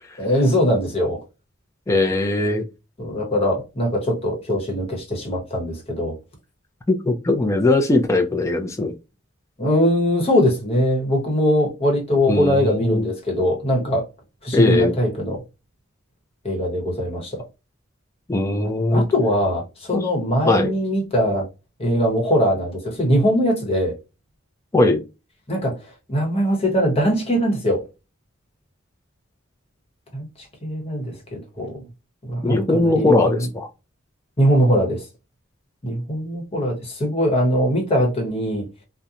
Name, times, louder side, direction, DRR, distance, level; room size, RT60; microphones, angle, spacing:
voice 1, 0.2-1.2 3.0-6.2 9.6-14.0 14.4-15.4 16.4-17.4 18.6-21.5 21.8-23.9 25.5-25.8 26.1-27.8 30.1-31.8 32.2-33.5 34.4-35.0 35.8-38.6, equal, 30° left, 1.0 m, -21 dB
voice 2, 1.9-2.6 6.9-8.9 12.3-13.1 14.5-14.9 18.3-19.0 19.9-20.0 20.4-20.7 24.7-25.0 32.4-33.7, left 2 dB, 15° left, 0.4 m, -19 dB
2.8 x 2.1 x 2.4 m
head